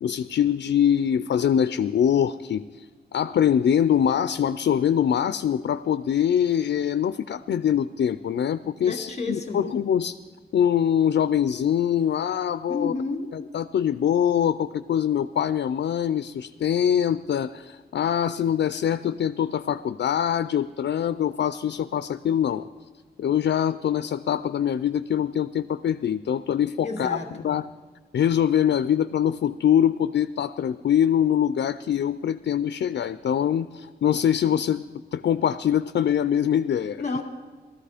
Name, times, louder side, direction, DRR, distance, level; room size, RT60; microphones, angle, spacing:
voice 1, 0.0-2.9 3.1-10.2 10.5-12.9 13.3-22.7 23.2-27.2 27.4-27.7 28.1-34.8 35.1-37.0, left 9 dB, 85° left, 13 dB, 0.4 m, -23 dB
voice 2, 8.9-9.7 12.7-13.3 26.8-27.5 37.0-37.2, left 3 dB, 40° left, 4 dB, 2.1 m, -30 dB
18.5 x 14.0 x 5.0 m, 1.5 s
wide cardioid pair, 155°, 18 cm